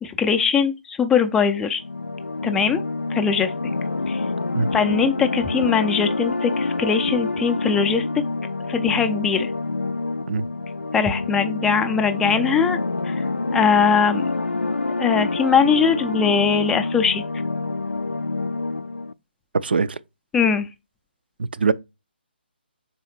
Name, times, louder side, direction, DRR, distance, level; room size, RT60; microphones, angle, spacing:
voice 1, 0.0-1.8 2.4-2.8 3.1-3.5 4.1-4.2 4.7-8.1 8.7-9.5 10.9-12.8 13.0-13.2 13.5-14.3 15.0-17.2 20.3-20.7, left 6 dB, 10° left, 0.4 m, -21 dB
sound 1, 1.8-19.1, left 3 dB, 80° left, 0.4 m, -27 dB
voice 2, 19.6-20.0 21.4-21.7, right 4 dB, 60° right, 0.5 m, -22 dB
5.5 x 4.1 x 4.2 m
figure-of-eight pair, 140°, 6 cm